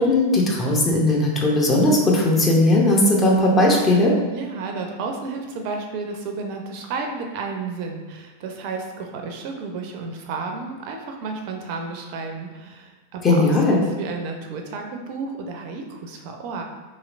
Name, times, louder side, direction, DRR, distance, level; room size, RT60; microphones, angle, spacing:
voice 1, 0.0-4.1 13.2-13.8, left 1 dB, 20° left, -2 dB, 0.6 m, -18 dB
voice 2, 4.3-13.5 13.8-16.6, right 4 dB, 45° right, 3 dB, 0.4 m, -32 dB
3.0 x 2.8 x 2.4 m, 1.3 s
figure-of-eight pair, 90°, 0 cm